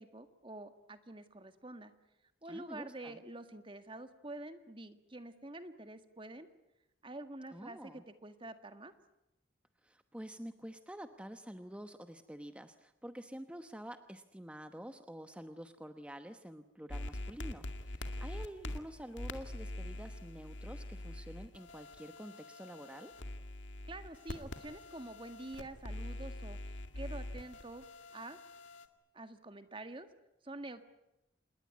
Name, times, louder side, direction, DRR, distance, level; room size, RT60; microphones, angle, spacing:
voice 1, 0.0-1.9 2.4-6.5 7.0-8.9 23.9-27.8 28.1-28.4 29.1-30.1 30.4-30.8, right 2 dB, 30° right, 9 dB, 1.8 m, -47 dB
voice 2, 2.5-3.2 7.5-8.0 9.8-23.1, equal, 5° right, 8 dB, 1.0 m, -48 dB
sound 1, 16.9-28.8, left 1 dB, 90° left, 2.2 m, -44 dB
27.5 x 20.5 x 9.6 m, 0.90 s
head